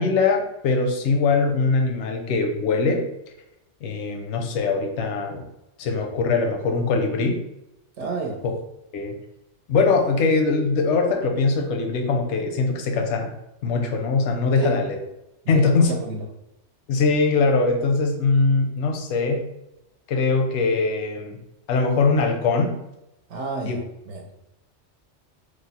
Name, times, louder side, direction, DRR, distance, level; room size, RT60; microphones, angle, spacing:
voice 1, 0.0-3.1 3.8-5.4 5.8-7.4 8.9-9.2 9.7-13.3 13.6-15.0 15.5-15.9 16.9-19.4 20.1-21.4 21.7-22.7 23.7-23.8, left 4 dB, 80° left, 3 dB, 0.9 m, -21 dB
voice 2, 8.0-8.4 14.5-14.7 15.4-16.2 23.3-23.8 24.1-24.3, right 3 dB, 85° right, 0 dB, 0.9 m, -29 dB
3.2 x 2.0 x 4.0 m, 0.90 s
omnidirectional pair, 1.2 m